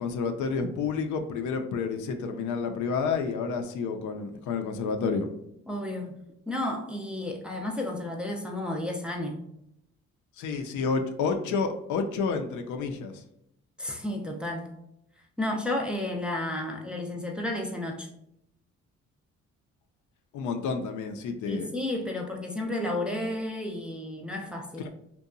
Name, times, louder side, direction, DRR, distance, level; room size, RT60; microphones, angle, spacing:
voice 1, 0.0-5.3 10.4-13.2 20.3-21.7 24.8-24.9, left 5 dB, 75° left, 5 dB, 0.5 m, -30 dB
voice 2, 5.7-6.2 6.5-9.4 13.8-14.8 15.4-18.1 21.5-24.8, left 1 dB, 5° right, 0 dB, 0.4 m, -32 dB
2.7 x 2.2 x 2.5 m, 0.78 s
cardioid pair, 90°, 30 cm